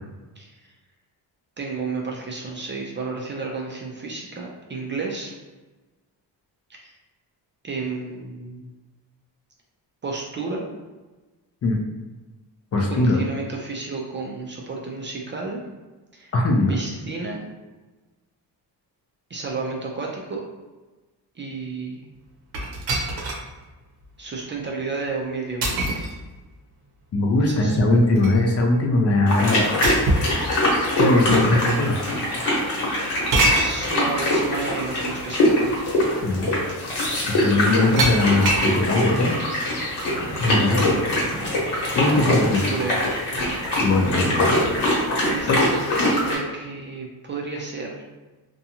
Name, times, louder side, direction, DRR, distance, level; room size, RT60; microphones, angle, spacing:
voice 1, 0.4-0.7 1.6-5.3 6.7-6.9 7.6-8.7 10.0-10.6 12.9-15.6 16.1-16.3 16.7-17.4 19.3-20.4 21.3-22.0 24.2-26.1 27.4-27.8 33.4-35.7 40.6-41.0 42.1-43.2 45.2-48.0, right 4 dB, 30° right, -1 dB, 0.3 m, -31 dB
voice 2, 12.7-13.2 16.3-16.7 27.1-29.7 31.0-32.0 36.2-36.5 37.3-39.4 40.4-40.8 42.0-42.6 43.8-44.5 45.5-45.6, left 2 dB, 40° left, 0 dB, 0.4 m, -20 dB
sound 1, 22.5-23.5 24.0-24.1 25.6-26.1 27.8-28.5 29.8-30.3 31.4-31.5 33.3-33.8 35.2-35.3 35.7-36.0 38.0-38.7, right 2 dB, 65° right, 0.7 m, -23 dB
sound 2, 29.3-46.4, left 1 dB, 70° left, 1.1 m, -23 dB
2.6 x 2.3 x 2.7 m, 1.2 s
cardioid pair, 125°, 41 cm